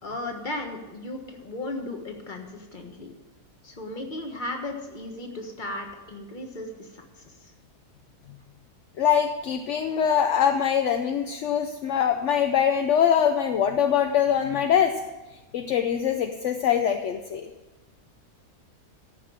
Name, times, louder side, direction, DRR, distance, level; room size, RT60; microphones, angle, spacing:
voice 1, 0.0-3.1 3.6-6.9, left 2 dB, 30° left, 3 dB, 1.5 m, -35 dB
voice 2, 9.0-15.0 15.5-17.5, left 8 dB, 60° left, 6 dB, 0.8 m, -23 dB
13.5 x 5.3 x 7.4 m, 1.2 s
omnidirectional pair, 1.7 m